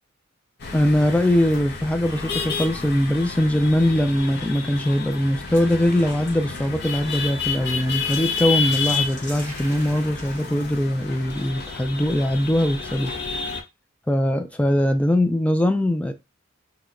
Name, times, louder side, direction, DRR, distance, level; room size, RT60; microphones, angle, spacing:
sound 1, 0.6-13.6, left 5 dB, 55° left, 0.6 m, -30 dB
voice 1, 0.7-13.1 14.1-16.1, left 1 dB, 5° left, 0.3 m, -21 dB
sound 2, 5.5-11.3, left 1 dB, 40° left, 1.3 m, -43 dB
2.9 x 2.1 x 3.7 m
head